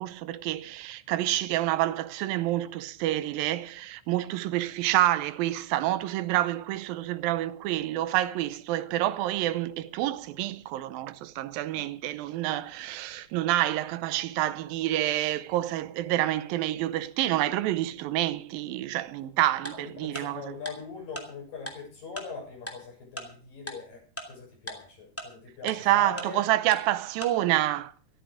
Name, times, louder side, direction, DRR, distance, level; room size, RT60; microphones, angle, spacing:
voice 1, 0.0-20.5 25.6-27.9, right 14 dB, 85° right, 2.5 m, -28 dB
Tick-tock, 19.6-19.7 20.1-20.2 20.6-20.7 21.1-21.2 21.7-21.8 22.2-22.3 22.7-22.8 23.2-23.3 23.7-23.8 24.2-24.3 24.7-24.8 25.2-25.3 25.7-25.8 26.2-26.3 26.7-26.8 27.2-27.3, equal, 5° left, 2.1 m, -36 dB
voice 2, 19.7-26.4, left 5 dB, 75° left, 8.6 m, -42 dB
14.0 x 13.5 x 5.0 m
omnidirectional pair, 4.0 m